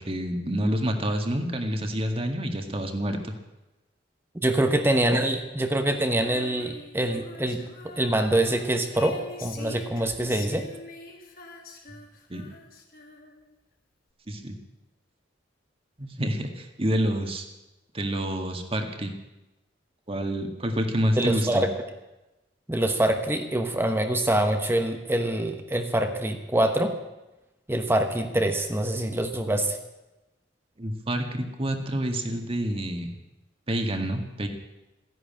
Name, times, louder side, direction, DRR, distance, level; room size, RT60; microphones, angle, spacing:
voice 1, 0.0-3.3 12.3-12.5 14.3-14.6 16.0-17.4 17.9-19.1 20.1-21.6 30.8-33.1 33.7-34.5, equal, 30° right, 5 dB, 1.9 m, -28 dB
voice 2, 4.4-7.6 8.0-10.6 21.2-21.7 22.7-27.0 27.7-29.8, right 1 dB, 15° right, 5 dB, 1.1 m, -25 dB
Female singing, 6.1-13.5, left 3 dB, 55° left, 2.4 m, -44 dB
14.5 x 11.0 x 8.7 m, 1.0 s
head